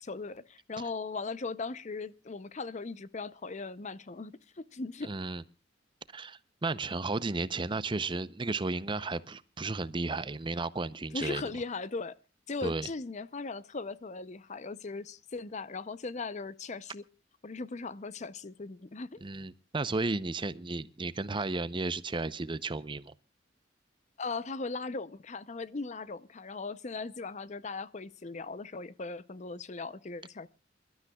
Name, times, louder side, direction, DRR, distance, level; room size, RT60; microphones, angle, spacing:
voice 1, 0.0-5.1 11.1-12.2 12.5-17.0 17.4-19.2 24.2-30.5, left 3 dB, 40° left, 0.6 m, -38 dB
voice 2, 5.0-5.4 6.1-11.4 12.6-12.9 19.2-23.1, right 3 dB, 25° right, 0.6 m, -33 dB
27.5 x 13.0 x 2.3 m
head